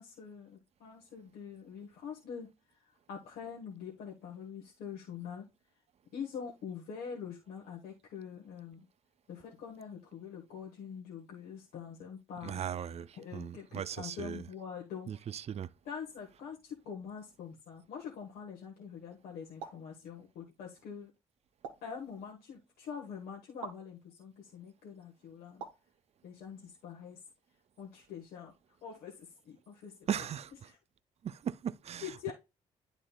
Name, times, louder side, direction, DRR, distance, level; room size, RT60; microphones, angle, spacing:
voice 1, 0.0-5.5 6.1-8.9 9.3-12.6 12.9-15.1 15.8-21.1 21.8-25.6 26.2-27.2 27.8-28.5 28.8-30.3 30.6-30.8 32.0-32.3, left 7 dB, 65° left, 1.5 m, -45 dB
voice 2, 12.4-14.5 15.1-15.7 30.1-30.5 31.2-32.3, right 8 dB, 40° right, 0.5 m, -38 dB
sound 1, 19.6-19.9 21.6-22.0 23.6-23.9 25.6-25.9, right 6 dB, 85° right, 1.0 m, -45 dB
11.0 x 3.9 x 2.3 m
hypercardioid pair, 40°, 17 cm